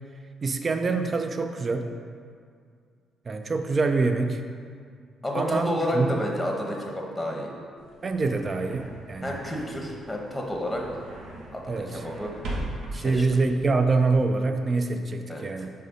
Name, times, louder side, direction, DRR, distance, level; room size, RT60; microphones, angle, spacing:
voice 1, 0.4-1.9 3.3-4.4 5.3-6.2 8.0-9.4 11.7-12.0 12.9-15.7, right 3 dB, 40° right, 7 dB, 0.4 m, -25 dB
voice 2, 5.2-7.5 9.2-10.8 11.5-12.3 12.9-13.3 15.3-15.4, equal, 5° left, -1 dB, 1.0 m, -30 dB
sound 1, 7.8-14.2, right 1 dB, 75° right, 1.0 m, -39 dB
5.4 x 3.2 x 5.3 m, 2.1 s
cardioid pair, 90°, 0 cm